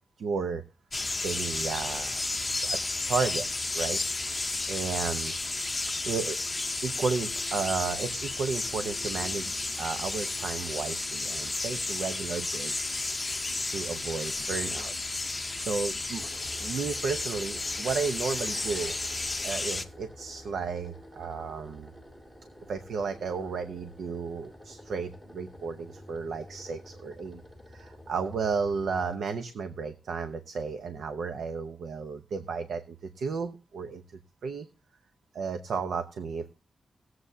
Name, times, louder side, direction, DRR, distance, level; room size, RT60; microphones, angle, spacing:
voice 1, 0.2-0.6 1.2-2.2 2.6-2.8 3.0-3.5 3.7-4.3 4.7-5.3 6.1-6.4 6.8-13.0 13.7-14.9 15.5-16.3 16.6-18.9 19.4-21.9 22.7-27.4 27.7-34.0 34.4-34.7 35.3-36.6, right 5 dB, 80° right, 8 dB, 0.8 m, -33 dB
sound 1, 0.9-19.9, left 2 dB, 15° left, 0.7 m, -32 dB
sound 2, 16.2-29.2, left 1 dB, 15° right, 2.2 m, -49 dB
19.0 x 7.8 x 2.7 m, 0.32 s
wide cardioid pair, 180°, 0 cm